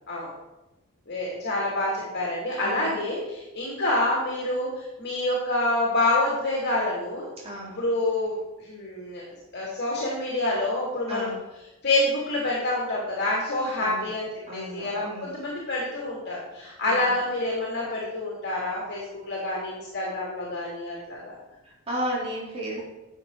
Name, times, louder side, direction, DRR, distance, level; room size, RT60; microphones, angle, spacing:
voice 1, 1.1-7.3 7.8-9.2 9.5-11.3 11.8-14.3 14.5-21.3, left 2 dB, 50° left, -5 dB, 2.8 m, -27 dB
voice 2, 2.6-3.0 7.4-7.8 11.1-11.4 13.8-14.1 14.5-15.3 16.8-17.1 21.6-22.8, equal, 25° right, -6 dB, 3.7 m, -34 dB
12.0 x 7.2 x 4.1 m, 0.98 s
head